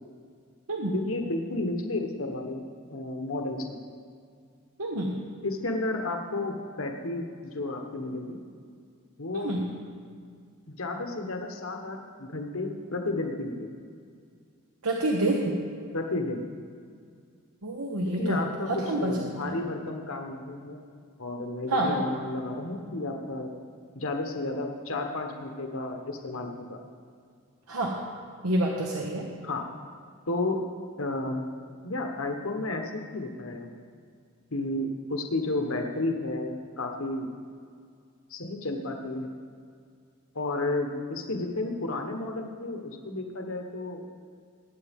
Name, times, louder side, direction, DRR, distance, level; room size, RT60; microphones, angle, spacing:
voice 1, 0.9-2.6 2.9-3.8 5.4-8.4 9.2-9.5 10.7-13.7 15.9-16.5 18.2-20.8 21.2-23.5 23.9-26.8 29.4-29.6 30.3-30.6 31.0-31.4 31.8-33.7 34.5-37.3 38.3-39.3 40.3-44.0, left 2 dB, 65° left, 3 dB, 1.2 m, -32 dB
voice 2, 4.8-5.2 9.3-9.7 14.8-15.6 17.6-18.4 18.7-19.5 21.7-22.0 27.7-28.0 28.4-29.3, right 1 dB, 85° right, -1 dB, 1.2 m, -27 dB
21.0 x 9.2 x 3.6 m, 2.2 s
head